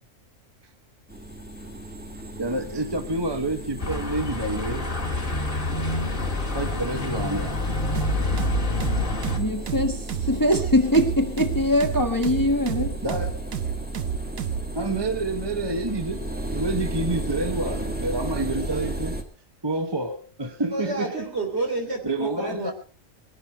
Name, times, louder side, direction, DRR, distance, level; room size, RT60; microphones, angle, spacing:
sound 1, 1.1-19.2, right 1 dB, 5° right, 1.7 m, -34 dB
voice 1, 2.4-4.9 6.5-7.6 13.0-13.5 14.7-16.2 16.5-19.2 19.6-21.3 22.0-22.7, right 2 dB, 20° right, 0.8 m, -28 dB
sound 2, 3.8-9.4, left 2 dB, 40° left, 2.8 m, -27 dB
sound 3, 7.9-14.7, right 9 dB, 85° right, 1.4 m, -30 dB
voice 2, 9.4-10.0 10.3-13.0, left 1 dB, 15° left, 1.4 m, -22 dB
voice 3, 20.7-22.7, right 2 dB, 50° right, 3.6 m, -29 dB
21.0 x 11.0 x 4.4 m
omnidirectional pair, 1.4 m